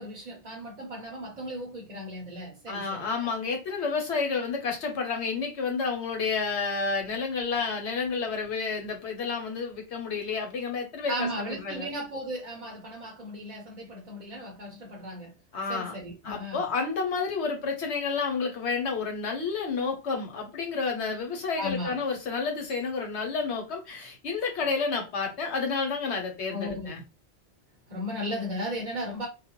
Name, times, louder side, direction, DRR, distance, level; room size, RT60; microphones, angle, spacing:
voice 1, 0.0-3.3 11.1-15.4 15.7-16.7 21.6-22.0 26.5-26.9 27.9-29.3, equal, 45° right, 0.8 m, -36 dB
voice 2, 2.7-11.9 15.5-15.9 16.2-27.0, left 4 dB, 85° left, 1.1 m, -30 dB
2.4 x 2.1 x 2.9 m
omnidirectional pair, 1.1 m